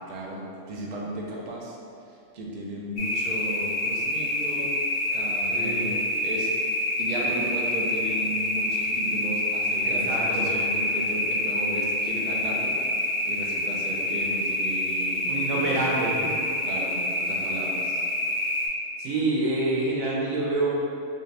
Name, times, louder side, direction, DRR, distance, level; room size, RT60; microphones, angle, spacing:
voice 1, 0.1-1.8 2.1-6.5 7.0-12.8 13.2-15.9 16.6-18.0, right 1 dB, 60° right, -3 dB, 0.4 m, -35 dB
sound 1, 3.0-18.7, left 1 dB, 60° left, 0.7 m, -27 dB
voice 2, 5.5-5.9 9.8-10.5 15.3-16.4 19.0-20.7, right 2 dB, 80° right, -4 dB, 1.1 m, -27 dB
3.2 x 2.7 x 3.2 m, 2.5 s
omnidirectional pair, 1.4 m